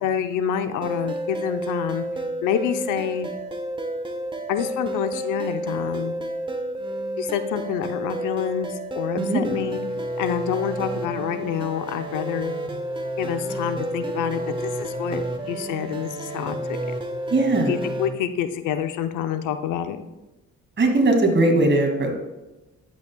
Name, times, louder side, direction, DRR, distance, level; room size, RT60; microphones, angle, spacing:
voice 1, 0.0-2.0 2.4-3.3 4.5-6.2 7.2-9.8 10.2-12.5 13.2-16.8 17.7-20.0, left 9 dB, 90° left, 9 dB, 0.6 m, -27 dB
sound 1, 0.8-18.1, right 1 dB, 15° right, 1.0 m, -30 dB
voice 2, 17.3-17.8 20.8-22.1, right 2 dB, 40° right, 3 dB, 2.1 m, -19 dB
10.5 x 8.2 x 2.2 m, 1.0 s
cardioid pair, 90°, 30 cm